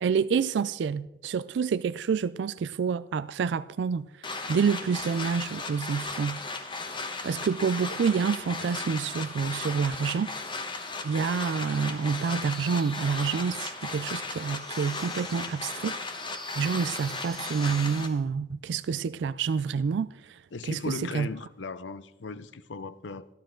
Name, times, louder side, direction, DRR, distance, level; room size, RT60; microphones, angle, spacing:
voice 1, 0.0-4.1 4.5-6.4 7.2-10.3 11.0-16.0 16.6-20.4 20.7-21.3, right 6 dB, 70° right, 0.3 m, -28 dB
sound 1, 4.2-18.1, left 3 dB, 25° left, 1.1 m, -36 dB
sound 2, 11.9-18.2, equal, 5° left, 0.8 m, -47 dB
voice 2, 20.5-23.3, left 4 dB, 75° left, 0.6 m, -37 dB
15.5 x 12.0 x 3.8 m
head